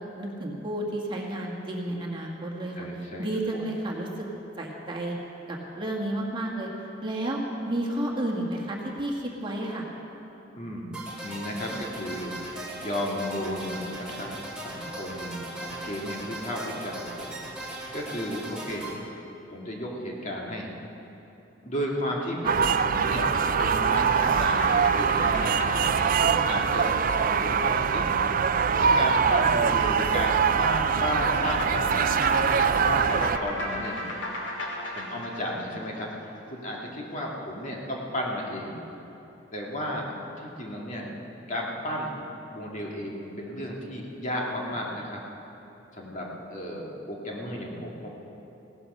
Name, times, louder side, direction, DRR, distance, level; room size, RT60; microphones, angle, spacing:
voice 1, 0.0-2.9 3.2-4.3 4.6-5.1 5.5-6.7 7.0-7.4 7.7-9.8 22.4-22.6, right 1 dB, 25° right, -2 dB, 1.8 m, -31 dB
voice 2, 2.8-3.3 3.5-3.6 10.5-10.9 11.2-19.1 19.5-20.7 21.6-22.4 22.8-23.3 23.6-25.9 26.2-28.2 28.8-34.0 34.9-38.8 39.5-41.1 41.5-42.1 42.5-45.2 45.9-48.1, equal, 40° left, -2 dB, 2.1 m, -34 dB
sound 1, 10.9-18.9, right 1 dB, 5° right, 2.4 m, -38 dB
sound 2, 22.5-33.4, right 6 dB, 50° right, 0.4 m, -23 dB
sound 3, 23.1-27.8 31.1-36.5, left 1 dB, 75° left, 2.4 m, -36 dB
16.5 x 13.0 x 5.5 m, 3.0 s
head